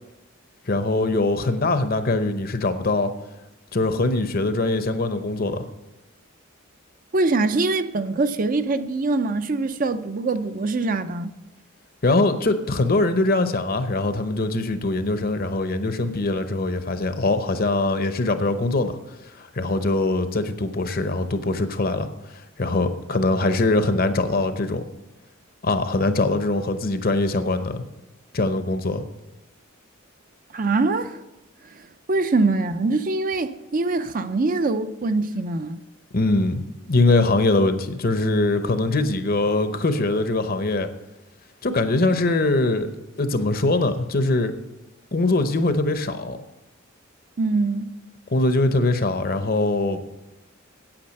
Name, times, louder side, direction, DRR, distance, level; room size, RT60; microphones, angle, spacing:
voice 1, 0.7-3.1 3.7-5.6 12.0-18.9 19.4-22.1 22.6-24.8 25.6-27.8 28.3-29.0 36.1-40.9 41.6-42.9 43.2-44.5 45.1-46.4 48.3-50.0, left 2 dB, 45° left, 0.8 m, -22 dB
voice 2, 7.1-11.3 30.5-31.2 32.1-35.8 47.4-47.9, right 3 dB, 40° right, 0.5 m, -23 dB
8.8 x 8.6 x 6.5 m
head